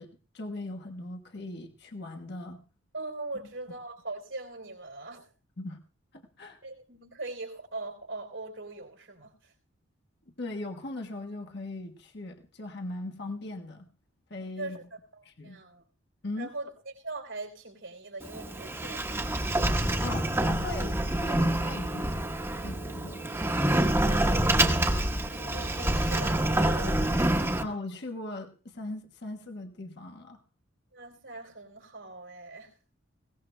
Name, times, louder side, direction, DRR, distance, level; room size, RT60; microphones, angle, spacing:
voice 1, 0.0-2.6 5.6-5.8 6.1-6.6 10.4-13.9 14.3-14.8 15.2-15.6 16.2-16.5 20.0-22.3 22.6-23.3 27.6-30.4, left 2 dB, 60° left, 3 dB, 1.3 m, -39 dB
voice 2, 2.9-5.3 6.6-9.5 14.6-14.8 15.1-15.8 16.4-19.3 24.0-24.4 25.3-27.3 30.9-32.7, right 2 dB, 85° right, 3 dB, 3.4 m, -41 dB
Sliding door, 18.2-27.6, right 1 dB, 15° right, 1.1 m, -27 dB
21.0 x 17.5 x 2.2 m, 0.36 s
head